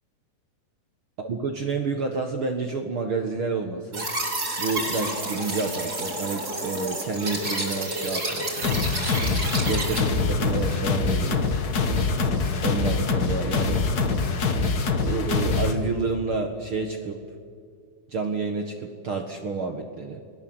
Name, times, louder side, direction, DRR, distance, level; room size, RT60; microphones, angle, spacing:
voice 1, 1.2-4.1 4.6-8.7 9.6-11.6 12.6-13.8 15.0-17.3 18.1-20.2, right 4 dB, 50° right, 4 dB, 1.6 m, -29 dB
sound 1, 3.9-10.0, right 2 dB, 25° right, 4.5 m, -30 dB
sound 2, 8.6-15.7, left 4 dB, 55° left, 1.0 m, -24 dB
29.5 x 20.0 x 7.9 m, 2.2 s
omnidirectional pair, 4.1 m